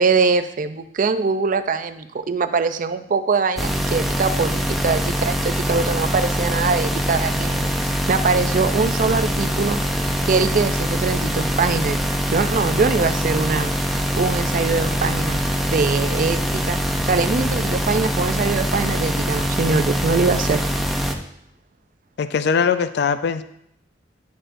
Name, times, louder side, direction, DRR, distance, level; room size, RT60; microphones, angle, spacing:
voice 1, 0.0-9.8 10.2-12.0 12.3-15.4 15.7-20.6, right 4 dB, 50° right, 9 dB, 0.4 m, -22 dB
sound 1, 3.6-21.1, equal, ahead, 0.6 m, -23 dB
voice 2, 22.2-23.4, left 6 dB, 65° left, 11 dB, 0.4 m, -21 dB
10.5 x 6.6 x 2.6 m, 0.77 s
head